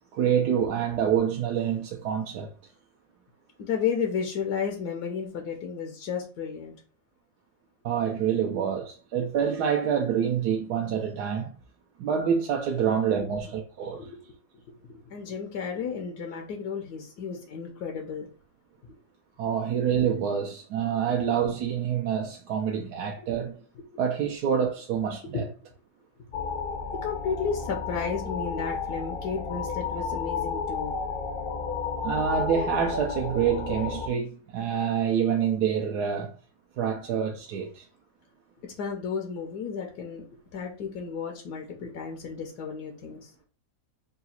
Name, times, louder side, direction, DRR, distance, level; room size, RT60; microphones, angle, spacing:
voice 1, 0.1-2.5 7.8-11.5 12.0-14.1 19.4-23.6 24.0-25.4 32.0-36.4 36.8-37.9, right 8 dB, 85° right, 1.2 m, -27 dB
voice 2, 3.6-6.8 12.8-12.9 13.2-13.3 13.9-14.2 14.7-18.3 23.2-23.3 23.8-23.9 25.2-25.4 27.0-31.0 38.6-40.2 40.5-43.3, left 6 dB, 85° left, 1.3 m, -33 dB
sound 1, 26.3-34.1, left 5 dB, 60° left, 0.5 m, -32 dB
3.9 x 2.4 x 4.2 m
omnidirectional pair, 1.7 m